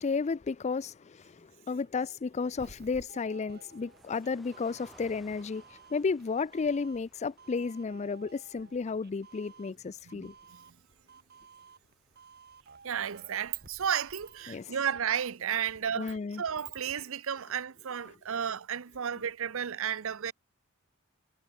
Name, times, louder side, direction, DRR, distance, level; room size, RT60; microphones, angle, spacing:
voice 1, 0.0-5.6 5.9-10.3 14.5-14.7 16.0-16.4, left 4 dB, 30° left, 0.4 m, -33 dB
Doorbell, 1.8-14.6, right 4 dB, 50° right, 3.4 m, -56 dB
sound 1, 3.7-13.6, equal, ahead, 3.1 m, -63 dB
voice 2, 10.1-10.6 12.8-20.3, right 8 dB, 70° right, 0.6 m, -33 dB
head